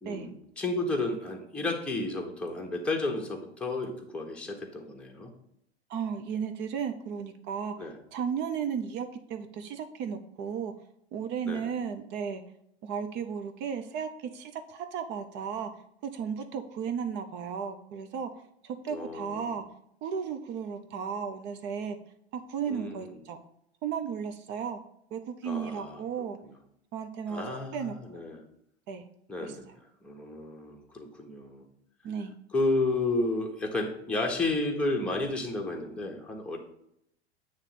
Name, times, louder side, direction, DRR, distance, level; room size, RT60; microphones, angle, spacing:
voice 1, 0.0-5.3 7.8-8.0 11.5-11.7 18.9-19.5 22.7-23.2 25.4-26.0 26.4-26.5 27.3-28.4 29.3-31.7 32.5-36.6, left 2 dB, 5° left, 0 dB, 1.2 m, -32 dB
voice 2, 5.9-10.7 11.1-12.4 12.8-15.7 16.0-18.3 18.6-19.6 20.0-22.0 22.3-23.4 23.8-24.8 25.1-26.4 26.9-27.5 27.7-27.9 28.9-29.0 29.4-29.6 32.0-32.3, right 7 dB, 35° right, 7 dB, 0.6 m, -34 dB
8.8 x 3.2 x 5.8 m, 0.74 s
figure-of-eight pair, 90°, 32 cm